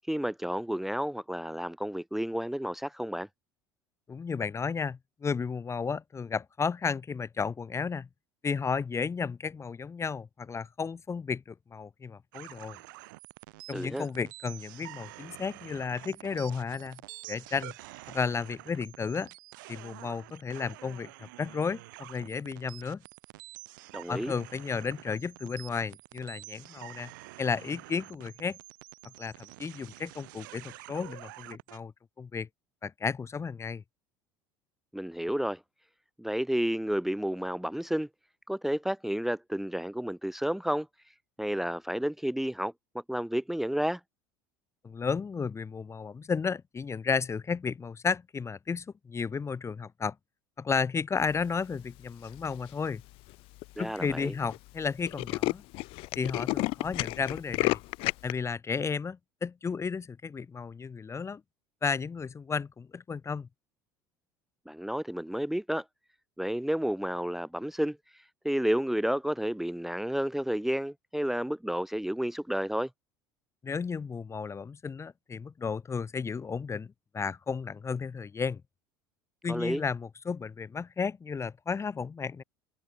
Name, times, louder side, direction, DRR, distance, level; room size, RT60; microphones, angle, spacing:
voice 1, 0.1-3.3 13.7-14.1 23.9-24.3 34.9-35.6 36.2-38.1 38.5-40.9 41.4-42.7 43.1-44.0 53.8-54.3 64.7-65.8 66.4-72.9 79.5-79.8, equal, ahead, 1.2 m, -31 dB
voice 2, 4.1-8.1 8.4-12.8 13.7-17.0 17.3-17.7 18.1-19.3 19.7-23.0 24.1-27.1 27.4-28.6 29.2-31.9 32.2-32.5 32.8-33.8 44.8-50.1 50.6-53.0 53.8-55.6 56.1-57.8 58.2-61.4 61.8-63.5 73.6-78.6 79.4-82.4, left 5 dB, 25° left, 1.6 m, -33 dB
sound 1, 12.3-31.8, right 21 dB, 70° right, 5.2 m, -48 dB
Tools, 52.3-52.7 53.3-53.4 53.6-53.7 54.0-54.2 54.5-54.6 54.8-58.3, left 22 dB, 55° left, 0.5 m, -31 dB
figure-of-eight pair, 70°, 11 cm